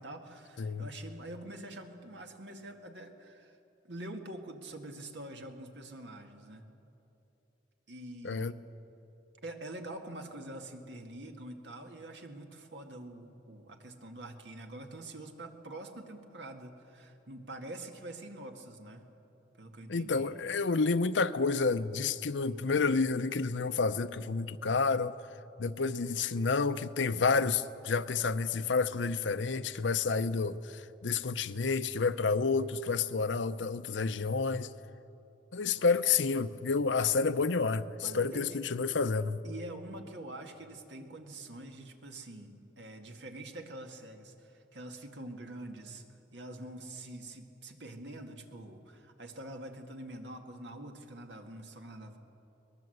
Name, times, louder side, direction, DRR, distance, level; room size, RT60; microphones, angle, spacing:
voice 1, 0.0-3.6 3.9-6.7 7.9-8.6 9.4-19.0 19.6-20.3 35.8-35.9 38.0-38.6 39.4-42.5 42.8-52.2, right 1 dB, 75° right, 4 dB, 2.1 m, -45 dB
voice 2, 0.6-0.9 8.2-8.5 19.9-25.1 25.6-34.7 35.5-37.9 38.1-39.4, left 4 dB, 90° left, 12 dB, 0.7 m, -29 dB
23.0 x 19.5 x 7.9 m, 2.9 s
head